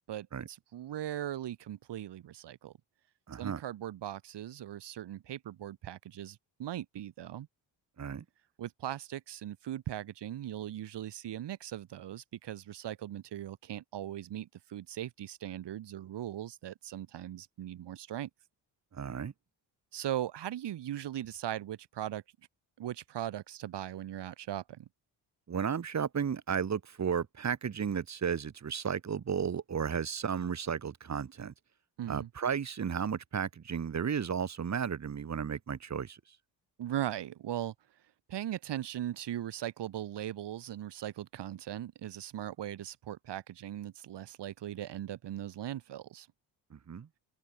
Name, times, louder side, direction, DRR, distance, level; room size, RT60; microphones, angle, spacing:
voice 1, 0.0-2.7 3.4-7.5 8.6-18.3 19.9-22.2 22.8-24.9 32.0-32.3 36.8-37.7 38.3-46.3, right 12 dB, 70° right, 3.8 m, -39 dB
voice 2, 3.3-3.6 8.0-8.2 18.9-19.3 25.5-31.5 32.1-36.2 46.7-47.1, right 7 dB, 40° right, 2.0 m, -33 dB
cardioid pair, 90°, 43 cm